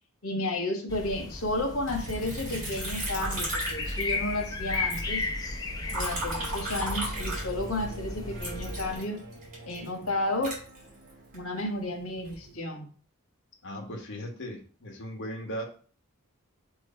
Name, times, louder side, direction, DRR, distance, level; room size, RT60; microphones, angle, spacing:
voice 1, 0.2-5.3 5.9-9.2 9.6-10.6 11.3-12.9, left 1 dB, 85° left, 2 dB, 1.5 m, -32 dB
sound 1, 0.9-9.0, left 2 dB, 15° left, 0.8 m, -35 dB
Liquid, 1.9-4.5 4.7-7.9 8.4-11.4 12.0-12.5, right 1 dB, 40° right, 3.2 m, -36 dB
sound 2, 5.9-11.6, right 2 dB, 55° right, 1.2 m, -45 dB
voice 2, 13.6-15.6, equal, 60° left, 1 dB, 1.5 m, -37 dB
7.2 x 3.2 x 4.3 m, 0.42 s
head